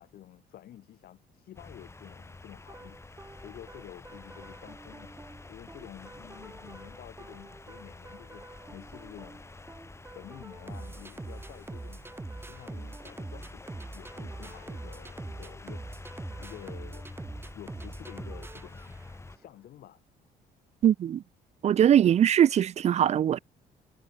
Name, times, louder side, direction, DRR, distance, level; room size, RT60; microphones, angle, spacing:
voice 1, 0.0-9.5 10.1-12.0 12.4-17.1 17.5-18.9 19.3-20.0, left 12 dB, 65° left, 4.2 m, -50 dB
sound 1, 1.6-19.4, left 3 dB, 15° left, 4.7 m, -48 dB
sound 2, 2.7-19.3, right 2 dB, 15° right, 4.4 m, -44 dB
voice 2, 20.8-21.2 21.6-23.4, right 10 dB, 40° right, 0.5 m, -21 dB
cardioid pair, 110°, 17 cm